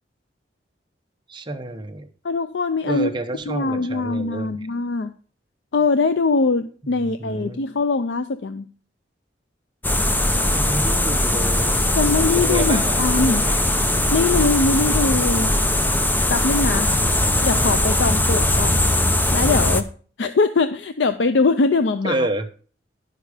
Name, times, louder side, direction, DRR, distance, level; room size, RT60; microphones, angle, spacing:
voice 1, 1.3-2.1 2.9-4.7 6.8-7.7 10.5-12.0 12.4-13.6 22.0-22.5, right 1 dB, 25° right, 6 dB, 0.9 m, -29 dB
voice 2, 2.2-3.1 3.5-5.1 5.7-8.7 12.0-13.4 14.1-15.5 16.3-16.9 17.4-18.8 19.3-19.9 20.2-22.3, left 3 dB, 80° left, 10 dB, 0.5 m, -22 dB
sound 1, 9.8-19.8, left 1 dB, 10° left, 0.6 m, -20 dB
10.5 x 6.7 x 4.9 m, 0.41 s
head